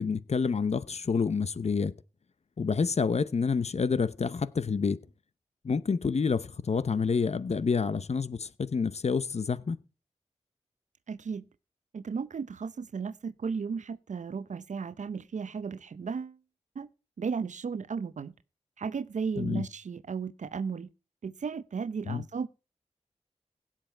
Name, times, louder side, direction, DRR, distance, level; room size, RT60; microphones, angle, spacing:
voice 1, 0.0-1.9 2.6-5.0 5.6-9.8 19.4-19.6 22.1-22.2, left 5 dB, 60° left, 0.8 m, -28 dB
voice 2, 11.1-11.4 11.9-16.4 16.8-16.9 17.2-18.3 18.8-20.9 21.2-22.5, right 5 dB, 75° right, 0.7 m, -35 dB
16.5 x 7.5 x 4.5 m
cardioid pair, 60°, 13 cm